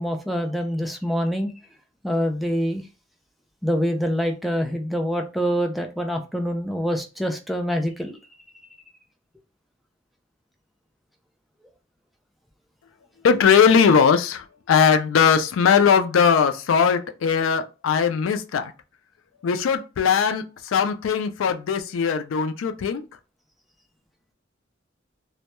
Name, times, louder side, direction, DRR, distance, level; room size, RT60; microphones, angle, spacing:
voice 1, 0.0-1.5 2.0-2.8 3.6-8.1, equal, ahead, 0.3 m, -25 dB
voice 2, 13.2-18.7 19.4-23.0, left 6 dB, 85° left, 0.3 m, -19 dB
2.2 x 2.1 x 2.9 m
head